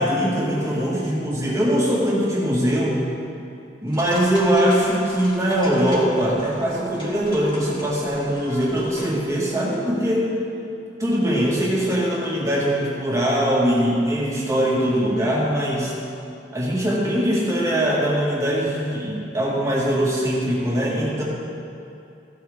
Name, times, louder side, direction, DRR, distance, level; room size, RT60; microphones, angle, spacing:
voice 1, 0.0-3.1 3.8-10.3 11.0-15.9 16.5-21.2, equal, 20° right, -5 dB, 2.1 m, -21 dB
sound 1, 3.9-9.2, left 1 dB, 30° left, 2.7 m, -39 dB
15.5 x 9.2 x 3.6 m, 2.6 s
head